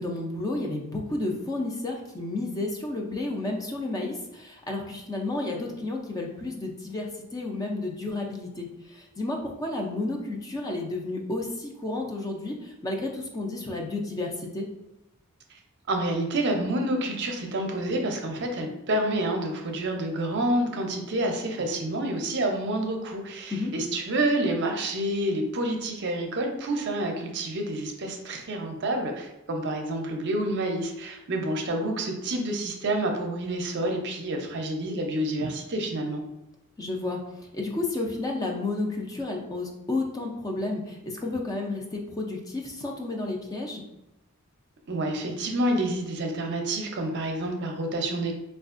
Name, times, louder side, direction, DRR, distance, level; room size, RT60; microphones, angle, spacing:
voice 1, 0.0-14.7 23.5-23.7 36.8-37.2 37.5-43.8, left 2 dB, 15° left, 1 dB, 0.4 m, -31 dB
voice 2, 15.9-36.2 44.9-48.3, right 1 dB, 55° right, 3 dB, 0.5 m, -28 dB
4.3 x 2.4 x 2.4 m, 0.91 s
head